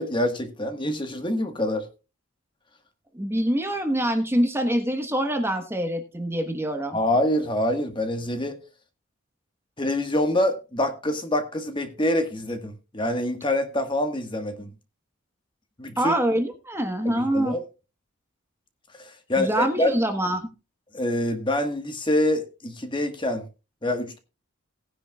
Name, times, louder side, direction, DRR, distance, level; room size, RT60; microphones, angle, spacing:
voice 1, 0.0-1.9 6.9-8.6 9.8-14.7 15.8-16.1 17.0-17.6 19.0-19.9 20.9-23.4 23.8-24.2, left 1 dB, 20° left, 1.4 m, -26 dB
voice 2, 3.1-7.0 16.0-17.5 19.4-20.4, right 1 dB, 10° right, 1.2 m, -25 dB
18.5 x 9.9 x 2.3 m
head